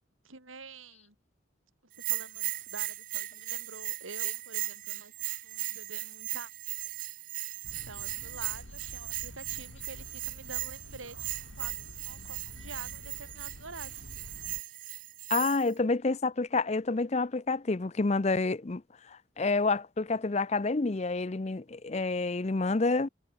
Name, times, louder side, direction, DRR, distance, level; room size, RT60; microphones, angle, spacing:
voice 1, 0.2-1.1 2.0-6.5 7.8-14.1 14.7-14.9, right 3 dB, 85° right, 6.4 m, -48 dB
Bell, 1.9-15.7, right 17 dB, 40° right, 0.4 m, -37 dB
sound 1, 7.6-14.6, left 1 dB, 80° left, 3.7 m, -48 dB
voice 2, 15.3-18.8 19.1-23.1, left 3 dB, 35° left, 0.5 m, -28 dB
head